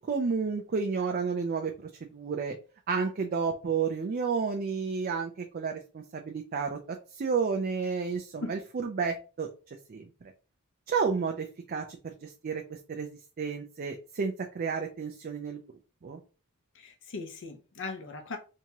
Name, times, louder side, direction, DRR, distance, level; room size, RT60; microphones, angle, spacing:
voice 1, 0.0-1.7 2.1-2.6 2.9-9.5 9.9-10.3 10.9-12.6 12.9-13.1 13.4-15.6 16.0-16.2, right 5 dB, 40° right, 0.4 m, -31 dB
voice 2, 16.8-18.4, left 3 dB, 60° left, 0.7 m, -39 dB
3.4 x 2.8 x 2.9 m
head